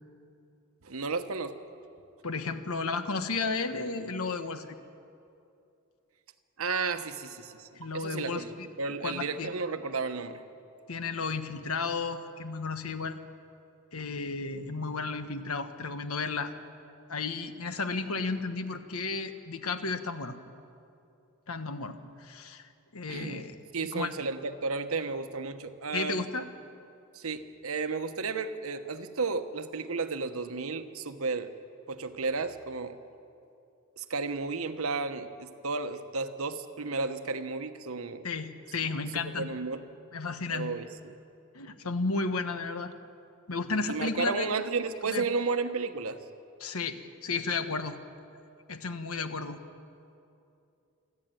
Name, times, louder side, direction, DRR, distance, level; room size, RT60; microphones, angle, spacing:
voice 1, 0.8-1.6 6.6-8.5 8.8-10.4 23.1-23.5 23.7-26.2 27.1-31.5 31.9-33.0 34.0-38.2 39.4-39.8 40.5-41.2 43.9-46.2, right 4 dB, 75° right, 9 dB, 1.1 m, -33 dB
voice 2, 2.2-4.7 7.7-8.7 9.0-9.5 10.9-13.2 13.9-16.5 17.1-20.4 21.5-23.5 23.9-24.1 25.9-26.4 38.2-39.5 40.1-40.7 41.5-42.9 43.5-44.5 45.1-45.2 46.6-48.0 48.7-49.6, left 4 dB, 80° left, 9 dB, 1.3 m, -33 dB
28.0 x 12.5 x 9.1 m, 2.6 s
head